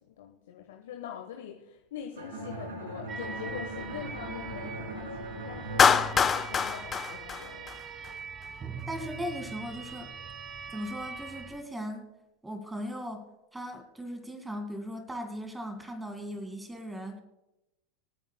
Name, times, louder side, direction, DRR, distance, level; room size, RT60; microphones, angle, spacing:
voice 1, 0.0-7.8, left 9 dB, 70° left, 3 dB, 1.1 m, -43 dB
Bowed string instrument, 2.2-7.1, right 1 dB, 75° right, 2.7 m, -40 dB
sound 1, 3.1-11.6, right 6 dB, 30° right, 1.5 m, -42 dB
Clapping, 5.8-8.1, left 7 dB, 25° left, 0.8 m, -24 dB
voice 2, 8.7-10.1 10.7-12.1 12.4-13.2 13.5-17.2, equal, 10° right, 7 dB, 2.0 m, -38 dB
26.5 x 9.2 x 2.2 m, 0.93 s
hypercardioid pair, 85°, 0 cm